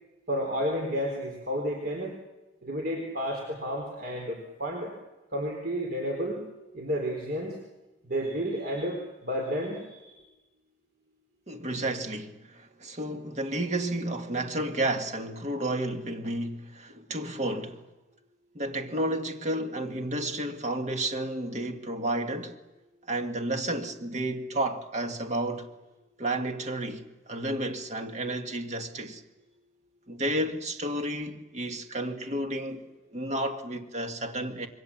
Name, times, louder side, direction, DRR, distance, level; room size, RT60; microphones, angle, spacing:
voice 1, 0.3-2.1 2.6-4.9 5.3-7.6 8.0-10.2, equal, 55° right, 3.9 m, -31 dB
voice 2, 11.5-17.8 18.5-22.6 23.1-25.7 26.2-29.2 30.1-34.7, right 1 dB, 40° right, 1.8 m, -31 dB
26.5 x 22.5 x 7.4 m
head